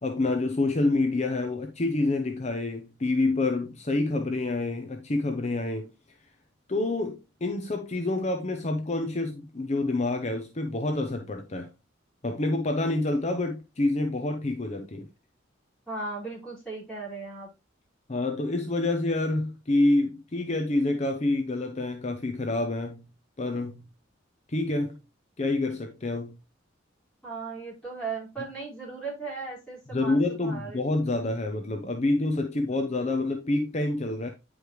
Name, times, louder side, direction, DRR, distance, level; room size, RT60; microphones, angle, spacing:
voice 1, 0.0-5.9 6.7-11.7 12.2-15.1 18.1-23.0 23.4-23.8 24.5-25.0 25.4-26.3 29.9-34.3, left 2 dB, 35° left, 0.7 m, -27 dB
voice 2, 15.9-17.5 27.2-30.8 32.7-32.8, right 4 dB, 5° left, 4.9 m, -37 dB
9.7 x 5.0 x 3.1 m
head